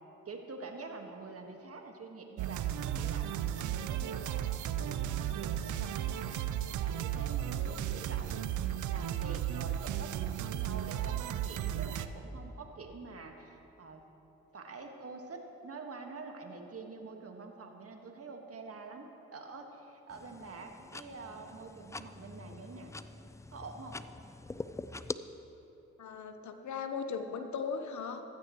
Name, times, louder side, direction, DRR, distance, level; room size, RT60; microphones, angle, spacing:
voice 1, 0.3-4.5 4.8-6.4 6.8-14.0 14.5-22.9 23.5-24.0, right 3 dB, 45° right, 3 dB, 1.7 m, -46 dB
sound 1, 2.4-12.1, right 11 dB, 65° right, 0.6 m, -34 dB
sound 2, 20.1-25.1, left 2 dB, 10° left, 0.4 m, -44 dB
voice 2, 26.0-28.2, left 5 dB, 60° left, 7 dB, 1.0 m, -38 dB
15.0 x 13.5 x 3.1 m, 3.0 s
hypercardioid pair, 40°, 32 cm